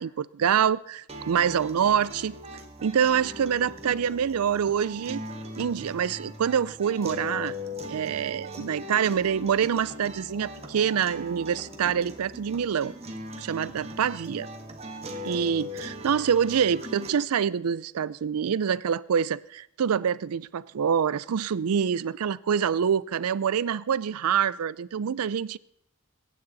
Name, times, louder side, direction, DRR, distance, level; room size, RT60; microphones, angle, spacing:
voice 1, 0.0-2.3 2.8-5.2 5.6-7.5 7.9-12.9 13.4-14.5 15.2-25.6, right 7 dB, 85° right, 0.4 m, -26 dB
sound 1, 1.1-17.1, left 1 dB, 30° right, 1.5 m, -40 dB
22.0 x 9.5 x 4.0 m
head